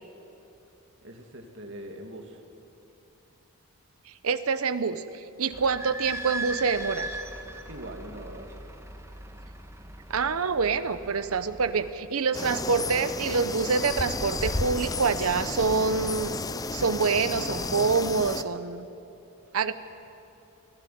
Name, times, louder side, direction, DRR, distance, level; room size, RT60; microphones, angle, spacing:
voice 1, 1.0-2.4 7.7-8.8, right 1 dB, 55° right, 3 dB, 2.3 m, -42 dB
voice 2, 4.1-7.1 10.1-16.4 16.7-18.9 19.5-19.7, right 5 dB, 80° right, 12 dB, 0.8 m, -26 dB
Idling / Squeak, 5.5-11.9, right 1 dB, 10° right, 1.4 m, -39 dB
sound 1, 12.3-18.4, left 3 dB, 15° left, 0.6 m, -32 dB
25.0 x 15.0 x 9.3 m, 2.9 s
head